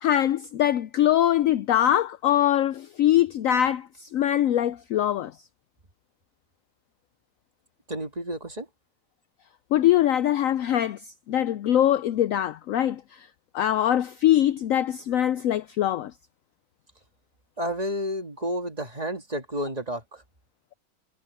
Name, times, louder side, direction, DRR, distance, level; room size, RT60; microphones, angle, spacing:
voice 1, 0.0-5.3 9.7-13.3 13.5-16.1, left 11 dB, 80° left, 0.7 m, -23 dB
voice 2, 7.9-8.6 17.6-20.0, equal, 25° right, 1.8 m, -30 dB
omnidirectional pair, 1.9 m